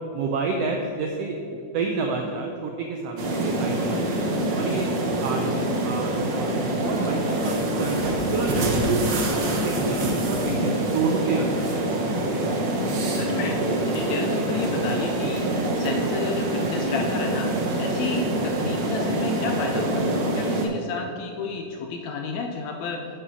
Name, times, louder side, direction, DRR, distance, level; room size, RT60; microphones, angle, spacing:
voice 1, 0.1-1.4 1.7-4.3 4.5-4.9 5.2-9.1 9.4-12.2, right 4 dB, 90° right, 2 dB, 1.3 m, -30 dB
sound 1, 3.2-20.7, right 1 dB, 65° right, 1.0 m, -25 dB
voice 2, 13.1-17.5 17.8-20.1 20.3-23.0, left 4 dB, 80° left, 3 dB, 1.7 m, -31 dB
8.2 x 5.6 x 5.4 m, 2.7 s
omnidirectional pair, 3.5 m